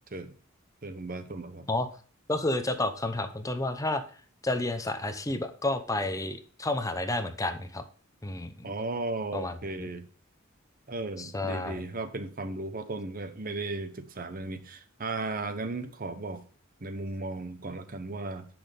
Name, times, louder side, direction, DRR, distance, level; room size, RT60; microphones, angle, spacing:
voice 1, 0.8-1.7 8.6-10.1 10.9-16.4 16.8-18.5, right 2 dB, 40° right, 1.0 m, -35 dB
voice 2, 2.3-4.0 4.4-7.8 8.2-8.7 9.3-9.9 11.2-11.8, left 2 dB, 15° left, 0.8 m, -31 dB
10.5 x 6.2 x 3.4 m
head